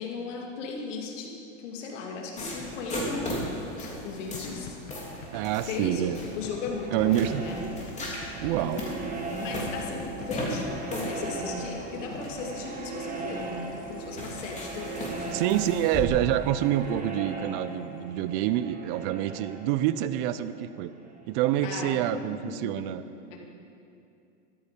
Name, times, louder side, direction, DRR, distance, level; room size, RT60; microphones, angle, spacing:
voice 1, 0.0-3.4 3.7-4.8 5.0-8.2 8.6-13.6 13.9-15.4 21.6-22.9 23.3-23.4, left 4 dB, 65° left, 0 dB, 2.9 m, -37 dB
sound 1, 2.4-16.0, left 1 dB, 15° left, 3.1 m, -38 dB
sound 2, 4.3-5.4 6.1-7.2 7.9-9.0 9.7-10.3, left 8 dB, 40° left, 1.3 m, -46 dB
sound 3, 4.7-21.3, right 3 dB, 20° right, 1.8 m, -39 dB
voice 2, 5.3-6.2 6.9-7.5 8.4-8.9 15.3-20.9 21.3-23.0, right 12 dB, 45° right, 14 dB, 0.6 m, -27 dB
13.5 x 12.5 x 5.3 m, 2.6 s
hypercardioid pair, 120°, 39 cm